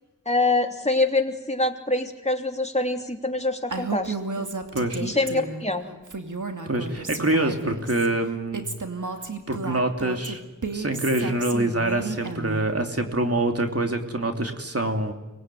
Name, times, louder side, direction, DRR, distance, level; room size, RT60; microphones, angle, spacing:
voice 1, 0.2-4.5 5.0-5.9, left 2 dB, 20° left, 3 dB, 3.1 m, -25 dB
Female speech woman speaking, 3.7-5.7 6.1-8.1 8.5-12.7, right 4 dB, 70° right, 2.6 m, -32 dB
voice 2, 6.7-8.7 9.5-10.4 10.7-15.1, right 2 dB, 50° right, 4 dB, 3.1 m, -25 dB
25.0 x 20.0 x 9.4 m, 1.1 s
wide cardioid pair, 50°, 32 cm